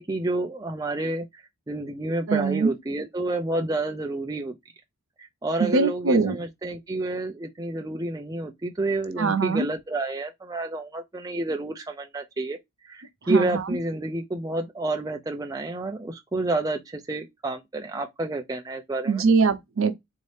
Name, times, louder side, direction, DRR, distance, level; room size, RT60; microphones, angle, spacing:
voice 1, 0.0-4.5 5.4-12.6 12.8-19.2, right 2 dB, 15° right, 0.4 m, -29 dB
voice 2, 2.3-2.7 5.6-6.4 9.2-9.7 13.3-13.7 19.1-19.9, right 4 dB, 70° right, 0.8 m, -22 dB
4.1 x 2.7 x 3.2 m
head